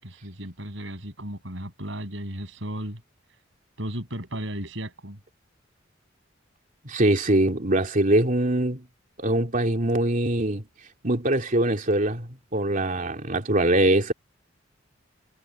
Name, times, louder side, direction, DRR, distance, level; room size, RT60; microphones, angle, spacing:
voice 1, 0.0-3.0 3.8-5.2, right 1 dB, 70° right, 7.4 m, -35 dB
voice 2, 6.8-8.8 9.2-10.6 11.0-14.1, right 1 dB, 45° right, 3.0 m, -23 dB
head